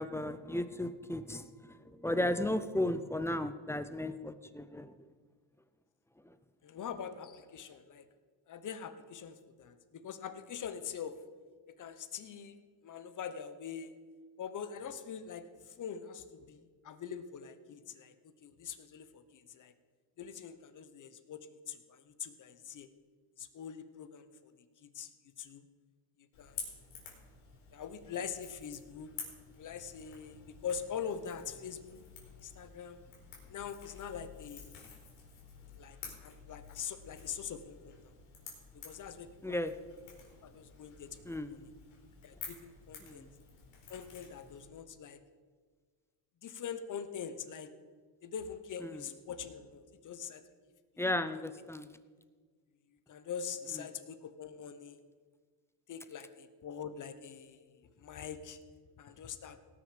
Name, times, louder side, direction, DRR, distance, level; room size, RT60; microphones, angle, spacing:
voice 1, 0.0-4.9 39.4-39.8 41.3-41.6 43.0-43.3 48.8-49.0 51.0-51.9, left 1 dB, 5° left, 12 dB, 0.4 m, -35 dB
voice 2, 6.6-8.1 8.5-11.2 11.7-12.6 12.8-14.0 14.4-18.1 18.4-19.7 20.2-22.9 23.4-25.1 25.4-25.6 26.4-26.6 27.7-29.1 29.5-32.1 32.4-33.0 33.5-34.7 35.8-38.1 38.7-39.6 40.4-41.2 41.5-41.7 42.2-43.2 43.9-45.2 46.4-47.7 48.2-50.4 51.3-51.7 53.1-55.0 55.9-58.6 59.0-59.6, left 7 dB, 40° left, 11 dB, 1.0 m, -43 dB
Crackle / Crack, 26.3-44.6, left 6 dB, 85° left, 3.8 m, -51 dB
17.5 x 6.4 x 5.2 m, 1.5 s
cardioid pair, 115°, 47 cm